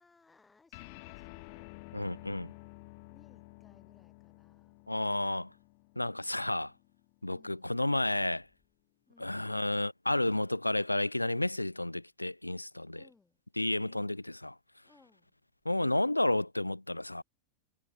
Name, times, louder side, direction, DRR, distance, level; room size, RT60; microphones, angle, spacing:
voice 1, 0.0-1.8 2.7-4.9 7.3-7.8 9.1-9.5 12.9-13.4 13.9-14.2 14.8-15.3, left 4 dB, 10° left, 6.5 m, -65 dB
sound 1, 0.7-7.5, left 31 dB, 45° left, 2.2 m, -52 dB
voice 2, 1.9-2.5 4.9-5.5 6.0-6.7 7.2-8.5 9.2-13.0 13.6-14.6 15.6-17.2, left 1 dB, 85° left, 0.5 m, -31 dB
figure-of-eight pair, 90°, 0 cm